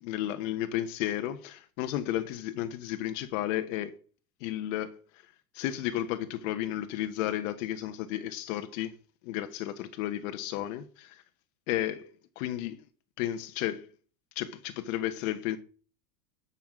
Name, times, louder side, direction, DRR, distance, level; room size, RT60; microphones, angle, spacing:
voice 1, 0.0-3.9 4.4-5.0 5.5-8.9 9.2-11.2 11.7-12.1 12.4-12.8 13.2-13.9 14.3-15.6, left 13 dB, 60° left, 1.2 m, -33 dB
12.0 x 5.7 x 6.3 m
supercardioid pair, 120°, 44 cm